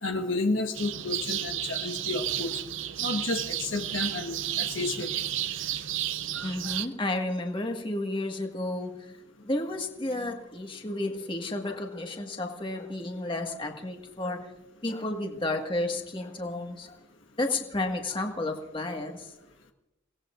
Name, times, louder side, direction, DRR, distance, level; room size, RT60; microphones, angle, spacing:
voice 1, 0.0-2.6 3.0-5.2, left 3 dB, 70° left, 4 dB, 1.4 m, -31 dB
sound 1, 0.7-6.9, right 12 dB, 70° right, 0.5 m, -32 dB
voice 2, 6.4-9.2 9.4-14.4 14.8-17.0 17.4-19.3, left 2 dB, 25° left, 3 dB, 1.7 m, -32 dB
30.0 x 18.0 x 2.6 m, 0.94 s
head